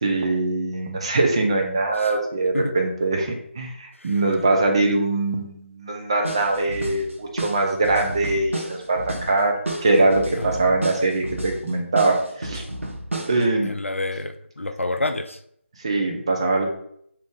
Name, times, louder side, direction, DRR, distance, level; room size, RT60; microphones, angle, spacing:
voice 1, 0.0-9.5 9.8-12.6 13.3-13.7 15.8-16.7, right 2 dB, 25° right, 1 dB, 0.4 m, -22 dB
sound 1, 6.2-13.5, right 1 dB, 85° right, 0.7 m, -32 dB
voice 2, 10.3-10.8 13.6-15.4, left 2 dB, 85° left, 9 dB, 0.4 m, -29 dB
2.9 x 2.4 x 3.6 m, 0.70 s
figure-of-eight pair, 160°, 7 cm